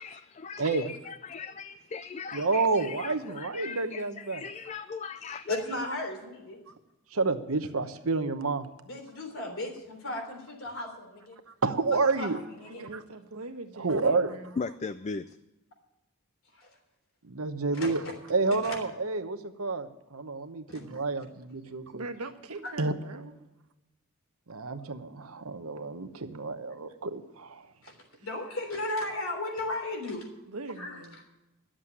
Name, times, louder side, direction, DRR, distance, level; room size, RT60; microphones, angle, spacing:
voice 1, 0.0-5.6 14.6-15.4, left 5 dB, 30° left, 0.3 m, -39 dB
voice 2, 0.6-0.9 2.3-4.4 7.1-8.7 11.6-12.4 12.9-13.0 13.8-14.3 17.2-18.0 18.3-22.0 22.8-22.9 24.5-27.6, right 3 dB, 70° right, 1.0 m, -29 dB
voice 3, 5.5-6.6 8.8-11.4 12.2-12.3 12.6-12.8 16.5-16.7 17.7-18.1 18.6-18.8 20.7-20.8 22.6-22.7 27.8-27.9 28.2-30.3 30.8-31.0, left 2 dB, 60° left, 3.5 m, -35 dB
voice 4, 12.7-14.5 21.9-23.4 28.1-28.3 30.5-31.2, right 2 dB, 90° right, 1.4 m, -41 dB
11.5 x 7.5 x 9.8 m
head